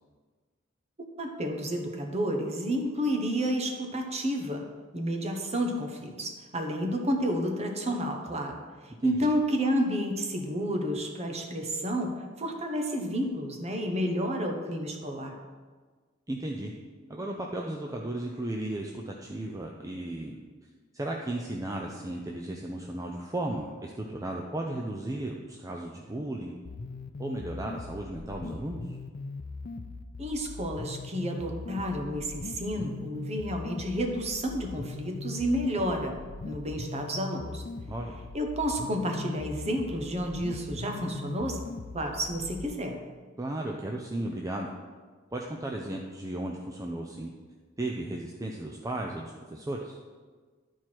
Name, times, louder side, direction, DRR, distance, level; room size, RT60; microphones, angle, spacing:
voice 1, 1.2-4.7 4.9-15.4 30.2-36.2 36.4-37.6 38.3-41.6 41.9-43.0, equal, 35° right, 4 dB, 1.0 m, -30 dB
voice 2, 9.0-9.3 16.3-16.7 17.1-20.4 20.9-26.5 27.2-29.0 37.8-38.2 43.4-44.7 45.3-47.3 47.8-50.0, right 1 dB, 15° right, 0 dB, 0.5 m, -35 dB
sound 1, 26.6-42.6, left 3 dB, 45° left, 0.4 m, -40 dB
11.5 x 4.6 x 4.5 m, 1.5 s
head